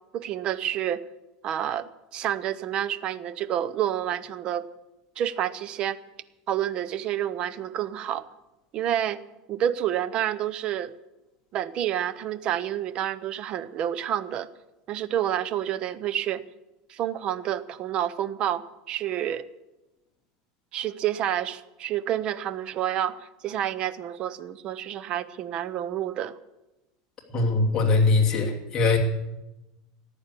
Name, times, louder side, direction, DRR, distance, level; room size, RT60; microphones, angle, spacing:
voice 1, 0.1-1.0 1.4-4.7 5.2-6.0 6.5-8.3 8.7-9.2 9.5-10.9 11.5-14.5 14.9-16.4 16.9-19.4 20.7-26.4, right 11 dB, 35° right, 16 dB, 0.7 m, -29 dB
voice 2, 27.3-29.0, left 3 dB, 20° left, -1 dB, 2.8 m, -21 dB
14.0 x 10.5 x 8.4 m, 1.0 s
supercardioid pair, 155°, 3 cm